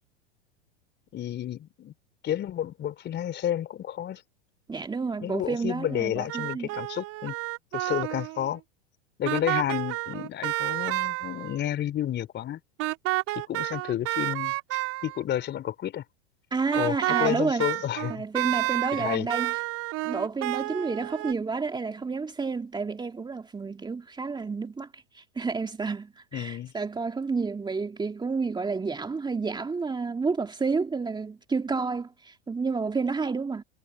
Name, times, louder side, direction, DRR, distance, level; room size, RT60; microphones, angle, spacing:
voice 1, 1.1-1.9 2.2-4.2 5.2-7.4 7.7-8.6 9.2-12.6 13.5-16.0 16.7-18.3 18.9-19.3 26.3-26.7, left 11 dB, 30° left, 3.8 m, -31 dB
voice 2, 4.7-6.7 16.5-17.7 18.1-19.6 20.0-33.6, right 4 dB, 15° right, 2.2 m, -30 dB
sound 1, 5.9-8.5 9.2-11.6 12.8-15.2 16.7-21.3, right 19 dB, 45° right, 5.6 m, -30 dB
hypercardioid pair, 95°, 33 cm